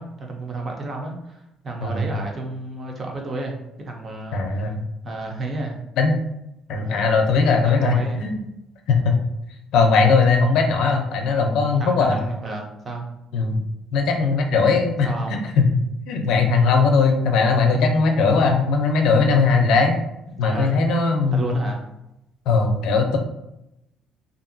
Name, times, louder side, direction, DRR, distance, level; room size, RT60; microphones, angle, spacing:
voice 1, 0.0-3.6 3.9-4.8 5.0-5.8 6.7-7.1 7.6-8.2 11.8-13.2 15.0-15.4 17.7-18.0 20.3-20.8 21.3-21.8, right 2 dB, 30° right, 1 dB, 0.5 m, -32 dB
voice 2, 4.3-4.8 6.0-6.2 6.7-8.4 8.9-9.2 9.7-12.2 13.3-13.6 13.9-19.9 20.4-21.5 22.5-23.2, left 4 dB, 70° left, 4 dB, 0.5 m, -19 dB
2.8 x 2.6 x 2.6 m, 0.86 s
cardioid pair, 165°, 0 cm